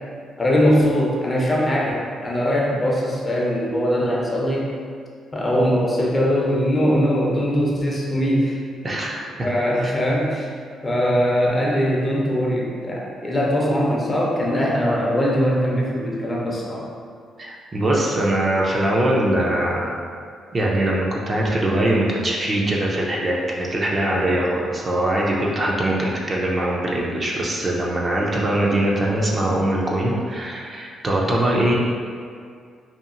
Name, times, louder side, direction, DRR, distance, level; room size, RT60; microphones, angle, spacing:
voice 1, 0.4-4.7 5.3-8.6 9.4-10.5 10.8-16.8, equal, 25° left, -3 dB, 0.5 m, -21 dB
voice 2, 8.8-9.2 9.8-9.9 17.4-20.0 20.5-31.7, right 1 dB, 35° right, -3 dB, 0.4 m, -22 dB
2.8 x 2.3 x 2.5 m, 2.1 s
cardioid pair, 90°, 0 cm